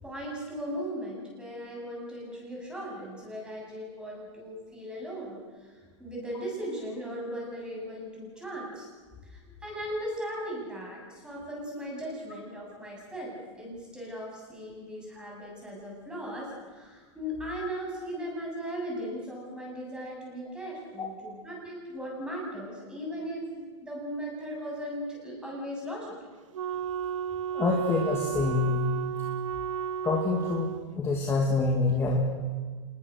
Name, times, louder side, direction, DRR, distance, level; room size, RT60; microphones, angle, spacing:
voice 1, 0.0-8.9 9.2-26.3, equal, 5° right, -3 dB, 8.0 m, -38 dB
Wind instrument woodwind instrument, 26.5-30.9, right 8 dB, 85° right, 0.7 m, -33 dB
voice 2, 27.5-29.0 30.0-32.2, left 3 dB, 15° left, 0 dB, 2.5 m, -26 dB
26.5 x 20.5 x 6.6 m, 1.4 s
supercardioid pair, 145°, 16 cm